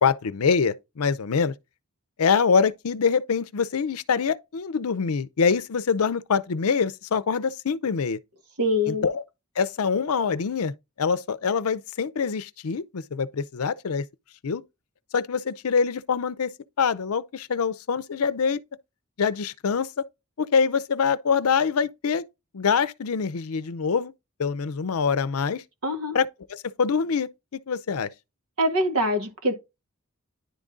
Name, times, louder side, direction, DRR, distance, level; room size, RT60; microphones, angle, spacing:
voice 1, 0.0-1.5 2.2-8.2 8.9-9.2 9.6-14.0 14.4-14.6 15.1-16.5 16.8-18.6 19.2-20.1 20.4-22.3 22.5-24.1 24.4-25.6 26.1-28.1, left 5 dB, 75° left, 0.5 m, -25 dB
voice 2, 8.6-9.1 25.8-26.2 28.6-29.5, left 1 dB, 80° right, 1.8 m, -24 dB
10.5 x 3.7 x 3.8 m
head